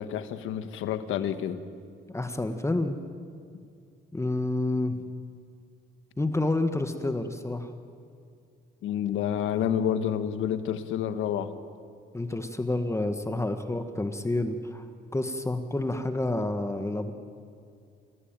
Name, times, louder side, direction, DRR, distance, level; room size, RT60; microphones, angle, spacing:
voice 1, 0.0-1.6 8.8-11.5, left 9 dB, 90° left, 10 dB, 1.5 m, -29 dB
voice 2, 2.1-3.0 4.1-5.0 6.2-7.7 12.1-14.9 15.1-17.1, left 2 dB, 15° left, 8 dB, 1.6 m, -29 dB
28.0 x 17.0 x 9.1 m, 2.3 s
cardioid pair, 90°, 20 cm